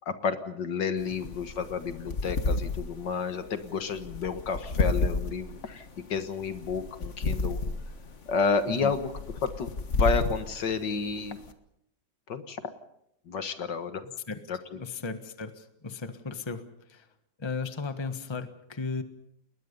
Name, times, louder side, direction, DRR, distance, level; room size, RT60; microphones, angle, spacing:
voice 1, 0.1-7.6 8.3-9.1 9.4-11.4 12.3-12.6 13.3-14.0 14.5-14.8, left 5 dB, 70° left, 9 dB, 2.1 m, -31 dB
sound 1, 1.0-11.5, left 3 dB, 40° left, 1.7 m, -32 dB
voice 2, 14.0-14.4 14.8-16.6 16.9-17.0 17.4-19.0, left 4 dB, 15° left, 9 dB, 1.3 m, -35 dB
29.5 x 21.0 x 5.4 m, 0.76 s
omnidirectional pair, 2.0 m